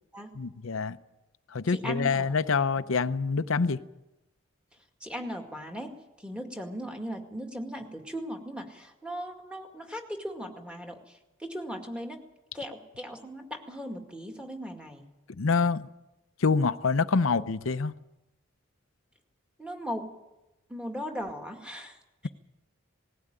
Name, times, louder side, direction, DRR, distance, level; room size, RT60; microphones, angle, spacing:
voice 1, 0.4-1.0 1.5-3.8 15.4-15.9 16.4-17.9, left 4 dB, 75° left, 13 dB, 0.7 m, -26 dB
voice 2, 1.7-2.3 5.0-5.9 6.2-12.2 12.5-15.1 19.6-20.1 20.7-22.0, equal, 5° right, 2 dB, 2.1 m, -38 dB
19.5 x 16.0 x 8.9 m, 1.0 s
head